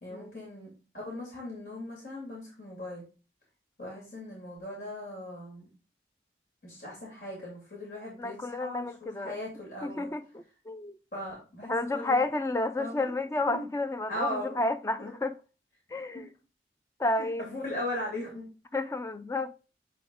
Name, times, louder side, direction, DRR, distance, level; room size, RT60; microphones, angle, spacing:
voice 1, 0.0-3.0 3.8-5.7 6.6-10.1 11.1-12.2 12.8-13.1 13.5-13.6 14.1-14.6 15.0-15.1 16.1-16.2 17.2-18.5, left 1 dB, 60° left, 2.6 m, -38 dB
voice 2, 8.2-9.4 9.8-11.0 11.7-15.3 15.9-16.3 17.0-17.5 18.7-19.5, left 2 dB, 15° left, 0.3 m, -31 dB
7.4 x 3.7 x 3.8 m
head